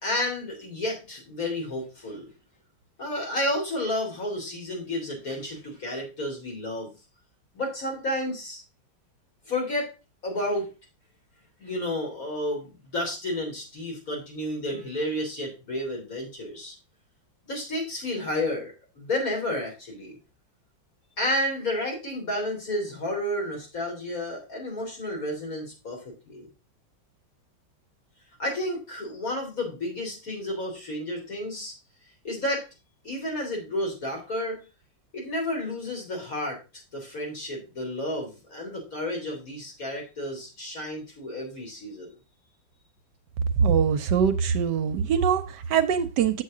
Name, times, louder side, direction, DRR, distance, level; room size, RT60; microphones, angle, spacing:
voice 1, 0.0-2.3 3.0-6.9 7.5-8.6 9.5-9.9 10.2-10.7 11.6-16.8 17.5-20.2 21.2-26.5 28.4-31.7 32.2-32.6 33.0-34.6 35.1-36.6 36.9-42.1, left 1 dB, 50° left, 3.7 m, -31 dB
voice 2, 43.6-46.4, right 7 dB, 75° right, 1.2 m, -23 dB
7.4 x 7.1 x 3.7 m
omnidirectional pair, 2.0 m